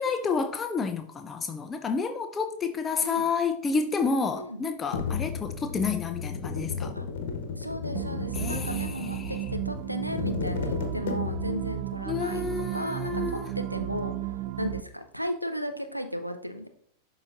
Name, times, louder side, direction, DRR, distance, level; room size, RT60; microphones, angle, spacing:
voice 1, 0.0-6.9 8.3-9.3 12.1-13.5, left 5 dB, 20° left, 0.5 m, -30 dB
voice 2, 4.3-4.7 6.9-7.1 7.6-9.4 9.6-14.3 14.6-16.7, equal, 90° right, 0.7 m, -35 dB
sound 1, 4.9-11.6, left 6 dB, 60° left, 1.0 m, -34 dB
sound 2, 7.9-14.8, right 14 dB, 40° right, 0.4 m, -34 dB
11.5 x 4.0 x 2.5 m
figure-of-eight pair, 90°, 0 cm